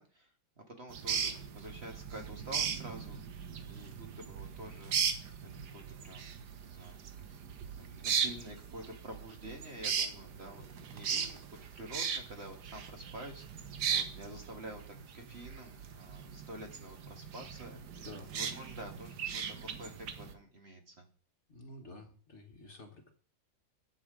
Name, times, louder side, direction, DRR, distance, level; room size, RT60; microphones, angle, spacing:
voice 1, 0.0-5.0 5.7-7.4 7.8-11.4 11.7-18.1 18.3-21.1, right 1 dB, 35° right, 3 dB, 1.8 m, -49 dB
sound 1, 0.9-20.3, right 7 dB, 70° right, 1.6 m, -38 dB
voice 2, 21.5-23.1, left 2 dB, 40° left, 3 dB, 1.5 m, -50 dB
11.0 x 7.2 x 5.0 m, 0.43 s
omnidirectional pair, 1.9 m